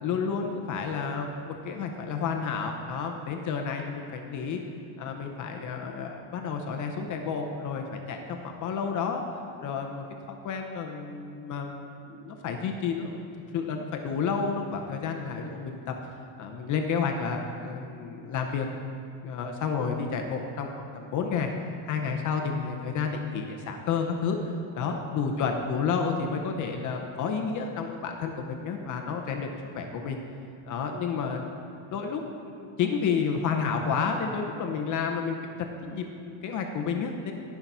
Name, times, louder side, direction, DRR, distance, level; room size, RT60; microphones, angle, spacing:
voice 1, 0.0-4.6 5.0-13.2 13.5-16.1 16.4-18.7 19.2-21.5 21.8-30.2 30.7-31.6 31.9-35.5 35.8-37.3, left 5 dB, 40° left, 3 dB, 0.6 m, -31 dB
11.5 x 5.8 x 5.4 m, 2.8 s
cardioid pair, 175°, 48 cm